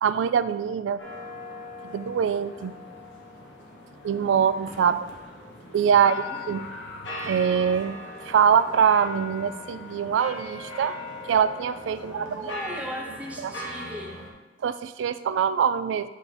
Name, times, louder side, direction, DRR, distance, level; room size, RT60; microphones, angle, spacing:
voice 1, 0.0-1.0 1.9-2.7 4.0-5.1 5.7-6.2 6.5-6.7 7.3-8.0 8.3-11.0 11.3-12.3 13.4-13.5 14.6-16.1, right 7 dB, 85° right, 13 dB, 0.3 m, -23 dB
sound 1, 1.0-14.3, left 1 dB, 80° left, 1.1 m, -39 dB
voice 2, 4.0-4.6 5.9-6.4 12.0-14.2, equal, 10° right, -1 dB, 1.0 m, -39 dB
9.0 x 3.5 x 4.2 m, 1.2 s
head